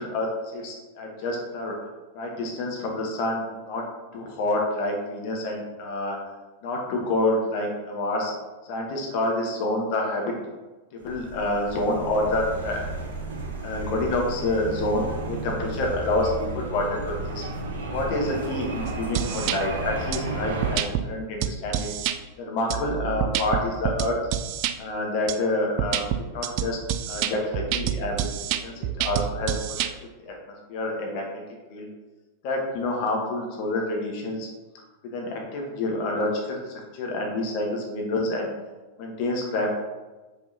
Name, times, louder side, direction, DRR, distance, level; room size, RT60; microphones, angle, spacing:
voice 1, 0.0-1.8 2.1-3.8 4.1-6.2 6.6-8.3 8.6-10.3 10.9-12.8 13.6-17.4 17.9-21.9 22.4-24.2 24.8-26.8 27.1-29.6 30.2-30.3 30.7-31.4 31.7-31.9 32.4-34.5 35.1-38.5 39.0-39.7, left 2 dB, 45° left, 0 dB, 1.2 m, -28 dB
sound 1, 11.0-20.8, right 2 dB, 65° right, 1.6 m, -33 dB
sound 2, 18.9-19.6 20.1-20.2 20.6-21.0 21.4-22.2 22.7-24.7 25.3-25.4 25.8-29.9, right 11 dB, 45° right, 0.4 m, -27 dB
6.8 x 5.1 x 2.8 m, 1.2 s
figure-of-eight pair, 90°, 0 cm